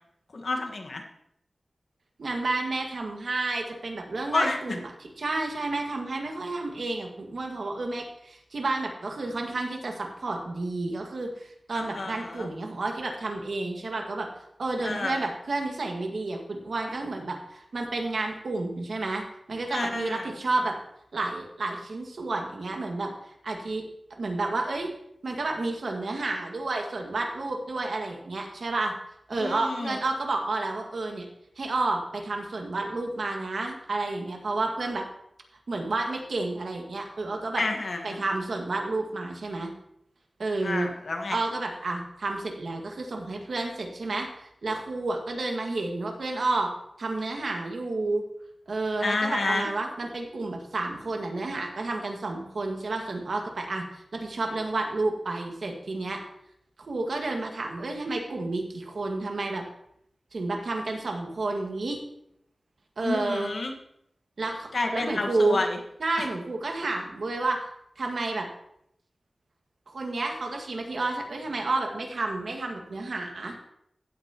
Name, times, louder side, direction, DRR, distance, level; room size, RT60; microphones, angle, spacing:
voice 1, 0.3-1.0 4.3-4.8 11.7-12.5 14.8-15.3 19.7-20.3 29.4-30.0 37.6-38.2 40.6-41.4 49.0-49.7 63.0-63.7 64.7-65.8 66.2-66.3, left 2 dB, 70° left, 2 dB, 1.5 m, -29 dB
voice 2, 2.2-14.3 14.6-19.2 19.5-20.8 21.1-24.9 25.2-28.9 29.3-31.3 31.6-35.1 35.7-37.6 38.0-39.7 40.4-40.9 41.3-46.7 47.0-48.2 48.7-56.2 56.9-59.6 60.3-62.0 63.0-63.5 64.4-65.6 66.0-67.6 68.0-68.5 69.9-73.5, right 2 dB, 75° right, 2 dB, 1.8 m, -30 dB
15.5 x 8.9 x 3.0 m, 0.74 s
wide cardioid pair, 90°, 0 cm